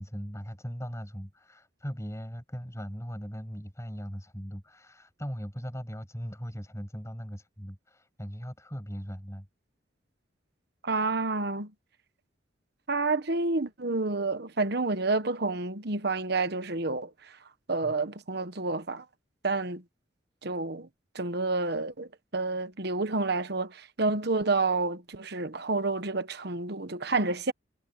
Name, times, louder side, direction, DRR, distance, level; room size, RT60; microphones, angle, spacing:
voice 1, 0.0-9.5 17.8-17.9, equal, 15° left, 7.1 m, -39 dB
voice 2, 10.8-11.7 12.9-17.1 17.7-19.0 19.4-19.8 20.4-20.9 21.1-27.5, right 3 dB, 55° right, 1.2 m, -29 dB
head